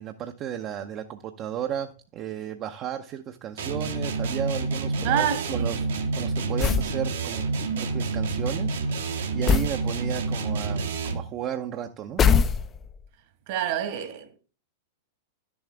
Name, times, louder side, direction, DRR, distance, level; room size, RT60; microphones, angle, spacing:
voice 1, 0.0-12.3, right 9 dB, 40° right, 0.7 m, -34 dB
sound 1, 3.6-11.3, right 3 dB, 75° right, 1.6 m, -28 dB
voice 2, 5.0-5.7 13.5-14.4, right 10 dB, 55° right, 1.7 m, -27 dB
sound 2, 6.6-7.0 9.5-9.8 12.2-13.0, left 7 dB, 25° left, 0.5 m, -21 dB
11.5 x 7.1 x 3.4 m
hypercardioid pair, 105°, 0 cm